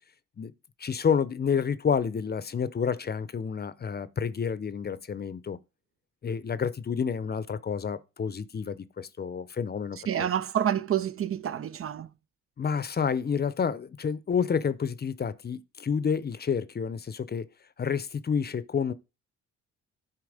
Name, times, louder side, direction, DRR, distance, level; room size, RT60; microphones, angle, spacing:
voice 1, 0.8-5.6 6.2-10.3 12.6-17.5 17.8-18.9, left 6 dB, 35° left, 0.7 m, -29 dB
voice 2, 10.1-12.1, right 10 dB, 50° right, 0.6 m, -28 dB
9.6 x 4.7 x 4.9 m
cardioid pair, 90°, 30 cm